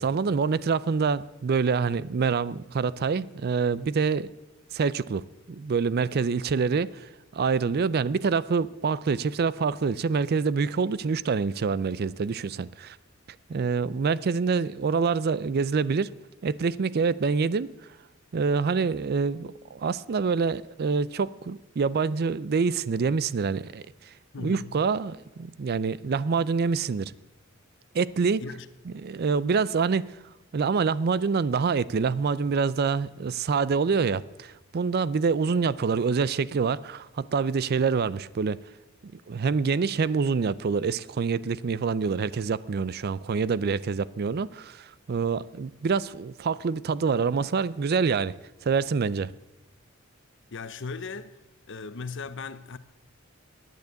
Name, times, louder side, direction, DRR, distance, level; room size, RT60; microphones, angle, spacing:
voice 1, 0.0-4.3 4.7-5.2 5.5-13.0 13.5-16.1 16.4-17.7 18.3-27.1 27.9-28.4 28.9-30.1 30.5-38.6 39.1-48.3 48.6-49.3, right 5 dB, 50° right, 0.4 m, -26 dB
voice 2, 24.3-24.8 28.4-28.7 50.5-51.4 51.7-52.8, left 4 dB, 65° left, 0.8 m, -37 dB
10.5 x 9.2 x 8.1 m
head